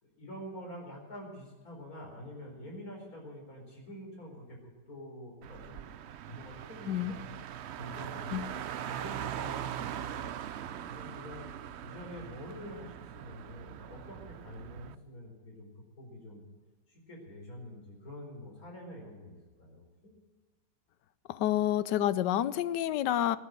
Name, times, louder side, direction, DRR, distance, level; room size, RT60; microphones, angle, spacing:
voice 1, 0.0-5.9 6.2-7.4 7.7-8.5 8.8-10.3 10.6-11.4 11.8-16.4 16.9-20.1, left 1 dB, 55° left, 0 dB, 4.8 m, -47 dB
Car, 5.4-14.9, right 10 dB, 80° right, 0.6 m, -41 dB
voice 2, 21.3-23.4, left 12 dB, 80° left, 17 dB, 1.3 m, -29 dB
18.0 x 10.0 x 7.7 m, 1.3 s
omnidirectional pair, 1.8 m